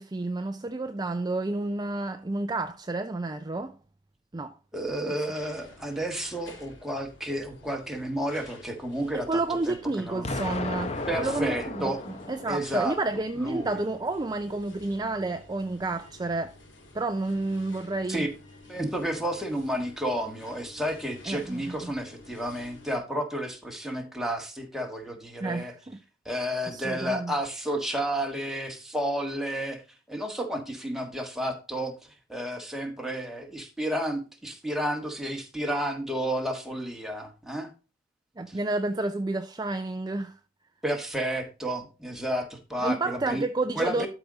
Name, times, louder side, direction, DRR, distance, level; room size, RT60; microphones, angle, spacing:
voice 1, 0.0-3.8 4.3-4.5 9.3-11.8 12.3-16.5 16.9-18.2 21.3-21.9 25.4-26.0 26.7-27.3 38.4-40.4 42.8-44.1, right 2 dB, 20° right, 0.5 m, -30 dB
voice 2, 4.7-10.3 11.1-12.0 12.5-13.0 13.3-13.8 18.1-18.3 18.7-25.7 26.2-29.8 30.1-37.7 38.5-38.6 40.8-43.4 43.7-44.1, right 1 dB, ahead, 1.6 m, -31 dB
sound 1, 5.3-23.0, left 2 dB, 75° left, 2.9 m, -51 dB
Explosion, 10.2-13.2, left 2 dB, 35° left, 0.9 m, -35 dB
12.5 x 4.9 x 3.9 m
head